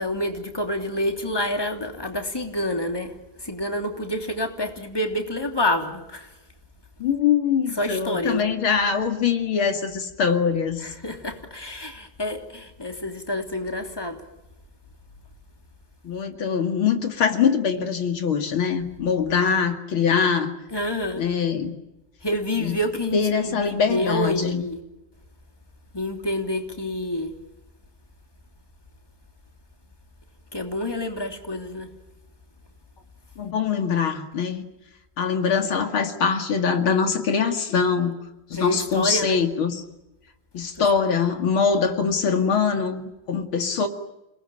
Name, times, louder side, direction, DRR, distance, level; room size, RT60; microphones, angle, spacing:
voice 1, 0.0-3.1 3.4-6.3 7.8-8.5 10.8-14.2 20.7-21.2 22.2-23.2 23.4-24.8 25.9-27.3 30.5-31.9 38.5-39.4, left 1 dB, 10° left, 4 dB, 3.1 m, -28 dB
voice 2, 7.0-10.9 16.0-20.5 21.2-21.7 22.6-22.8 23.1-24.6 33.4-34.6 35.2-38.1 38.5-39.8 40.5-43.9, left 6 dB, 85° left, 6 dB, 3.1 m, -23 dB
29.5 x 19.5 x 9.1 m, 0.96 s
omnidirectional pair, 2.2 m